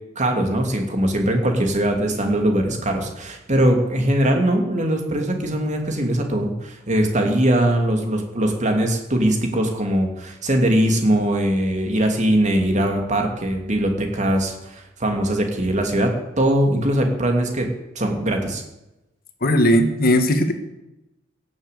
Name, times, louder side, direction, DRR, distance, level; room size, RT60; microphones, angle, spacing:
voice 1, 0.2-17.7 17.9-18.6, right 1 dB, 40° right, 3 dB, 2.7 m, -21 dB
voice 2, 19.4-20.5, equal, 50° left, 7 dB, 1.7 m, -17 dB
17.0 x 7.5 x 8.3 m, 0.94 s
head